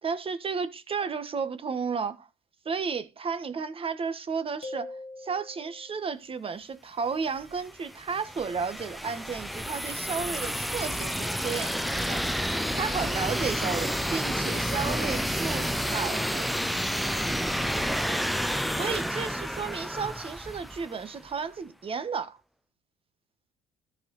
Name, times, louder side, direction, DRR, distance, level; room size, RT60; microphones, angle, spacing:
voice 1, 0.0-2.3 2.6-12.2 12.7-16.5 18.8-22.4, right 5 dB, 35° right, 1.4 m, -33 dB
sound 1, 4.6-6.1, left 2 dB, 45° left, 1.8 m, -42 dB
sound 2, 7.4-21.2, equal, ahead, 0.6 m, -30 dB
14.0 x 5.0 x 4.0 m
cardioid pair, 110°, 17 cm